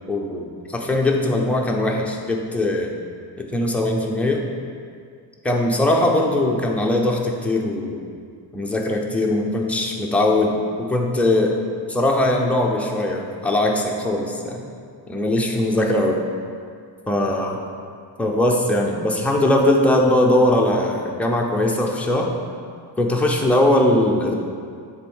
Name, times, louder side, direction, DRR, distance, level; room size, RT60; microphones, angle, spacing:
voice 1, 0.1-2.9 3.4-4.4 5.4-8.0 8.5-11.6 11.9-14.6 15.1-16.2 17.1-17.6 18.2-22.3 23.0-24.3, left 1 dB, 5° left, -1 dB, 0.5 m, -20 dB
7.4 x 3.5 x 5.4 m, 2.2 s
cardioid pair, 140°, 46 cm